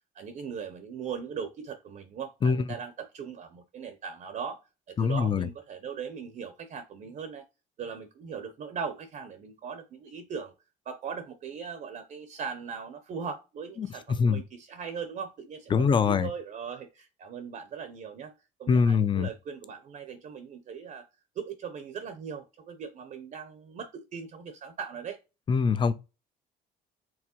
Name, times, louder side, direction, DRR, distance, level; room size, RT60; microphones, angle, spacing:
voice 1, 0.1-4.6 4.9-7.5 7.8-10.5 10.9-18.3 18.6-21.1 21.4-25.2, right 6 dB, 50° right, 0.6 m, -39 dB
voice 2, 5.0-5.5 14.2-14.4 15.7-16.3 18.7-19.3 25.5-25.9, left 5 dB, 30° left, 0.5 m, -23 dB
4.7 x 3.1 x 2.9 m
cardioid pair, 110°, 17 cm